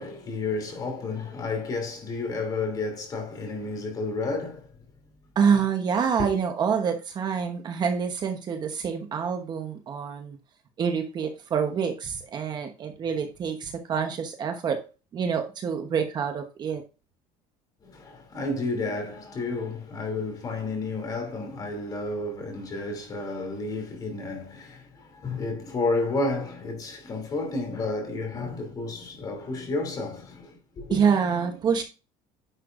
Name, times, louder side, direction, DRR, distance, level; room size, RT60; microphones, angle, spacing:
voice 1, 0.0-4.7 5.9-6.3 17.8-31.0, left 3 dB, 30° left, 2.8 m, -31 dB
voice 2, 5.3-10.4 10.8-14.8 15.1-16.8 30.9-31.8, right 6 dB, 30° right, 1.0 m, -26 dB
10.0 x 6.5 x 2.5 m
cardioid pair, 160°, 14 cm